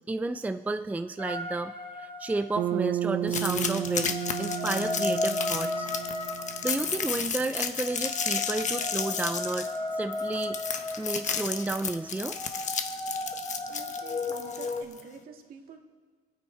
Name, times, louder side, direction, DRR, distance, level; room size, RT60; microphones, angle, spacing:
voice 1, 0.1-5.9 6.6-10.6 11.0-12.6, right 2 dB, 10° right, 9 dB, 0.5 m, -32 dB
sound 1, 1.2-2.8 3.7-14.8, left 2 dB, 30° left, 1.5 m, -35 dB
Bass guitar, 2.6-6.9, right 11 dB, 80° right, 0.6 m, -33 dB
sound 2, 3.3-15.0, left 6 dB, 45° left, 1.2 m, -33 dB
voice 2, 13.7-15.8, right 6 dB, 60° right, 2 dB, 2.2 m, -47 dB
26.0 x 9.4 x 4.6 m, 1.5 s
cardioid pair, 110°, 17 cm